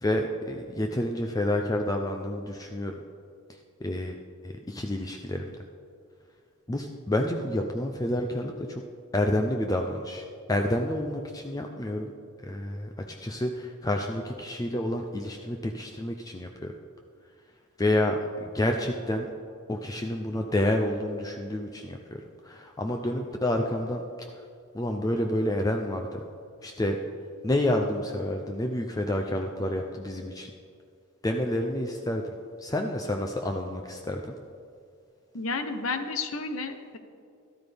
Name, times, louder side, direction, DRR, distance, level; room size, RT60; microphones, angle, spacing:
voice 1, 0.0-3.0 3.8-4.2 4.4-5.6 6.7-8.8 9.1-12.1 12.4-16.7 17.8-19.3 19.7-24.0 24.3-24.4 24.7-26.2 26.6-27.0 27.4-30.5 31.2-32.2 32.6-34.4, left 1 dB, 15° left, 3 dB, 0.5 m, -29 dB
voice 2, 35.3-37.0, left 3 dB, 75° left, 8 dB, 0.9 m, -31 dB
13.0 x 12.5 x 3.5 m, 2.3 s
head